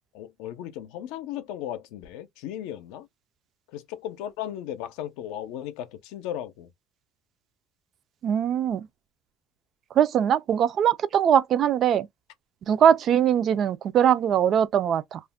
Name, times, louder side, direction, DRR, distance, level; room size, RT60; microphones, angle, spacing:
voice 1, 0.1-3.1 3.7-6.7, left 11 dB, 75° left, 0.5 m, -36 dB
voice 2, 8.2-8.9 10.0-12.1 12.7-15.2, right 9 dB, 40° right, 0.3 m, -21 dB
2.4 x 2.1 x 3.4 m
cardioid pair, 135°, 0 cm